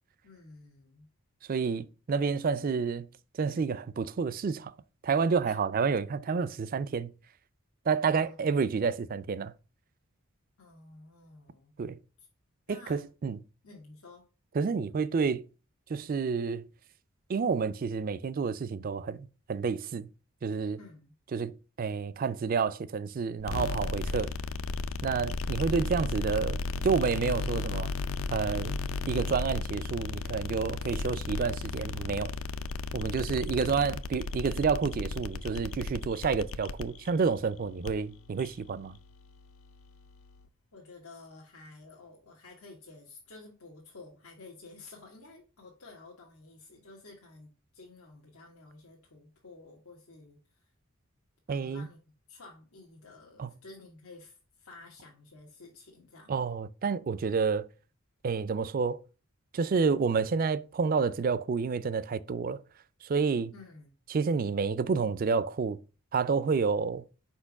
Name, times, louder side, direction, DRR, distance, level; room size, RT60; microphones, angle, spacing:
voice 1, 0.2-1.1 5.4-5.6 8.1-8.4 10.6-11.7 12.2-12.3 12.7-13.0 13.6-14.2 20.8-21.1 40.7-50.7 51.5-52.0 52.3-56.4 63.5-63.9, left 3 dB, 90° left, 1.3 m, -52 dB
voice 2, 1.5-3.1 3.4-4.7 5.0-7.1 7.9-9.5 11.8-12.0 12.7-13.4 14.6-15.4 15.9-16.6 17.3-20.1 20.4-20.8 21.3-24.3 25.0-27.9 28.3-28.8 29.1-32.3 32.9-39.0 51.5-51.9 53.4-53.5 56.3-57.7 58.2-59.0 59.5-62.6 63.0-63.5 64.1-65.8 66.1-67.0, right 5 dB, 40° right, 0.3 m, -29 dB
sound 1, 23.4-40.5, left 3 dB, 70° left, 0.5 m, -35 dB
5.0 x 4.4 x 5.8 m
head